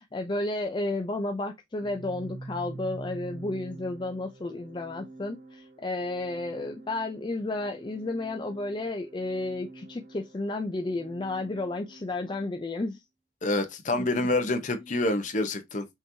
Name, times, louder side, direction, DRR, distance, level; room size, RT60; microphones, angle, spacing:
voice 1, 0.0-13.0 13.9-14.1, left 2 dB, 25° left, 0.4 m, -32 dB
Organ, 1.8-12.5, right 2 dB, 50° right, 0.9 m, -46 dB
voice 2, 13.4-15.9, left 2 dB, 45° left, 0.9 m, -27 dB
5.6 x 3.0 x 2.7 m
head